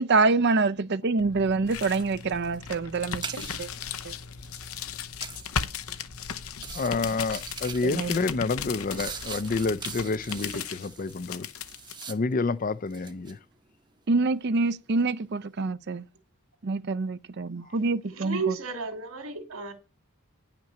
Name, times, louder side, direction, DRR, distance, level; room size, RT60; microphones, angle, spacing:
voice 1, 0.0-3.7 4.0-4.1 7.8-8.2 14.1-16.0 16.6-18.4, right 3 dB, 50° right, 0.5 m, -26 dB
sound 1, 1.2-12.0, left 7 dB, 75° left, 0.8 m, -37 dB
sound 2, 1.4-1.7 2.0-3.8 4.3-4.6 5.2-5.5 6.1-6.3 6.5-8.1 8.5-12.5 12.8-13.4, right 6 dB, 20° right, 0.8 m, -41 dB
voice 2, 6.7-11.5 12.1-13.4, left 3 dB, 40° left, 0.5 m, -28 dB
voice 3, 18.1-19.7, right 4 dB, 70° right, 2.6 m, -33 dB
10.0 x 5.9 x 7.7 m
head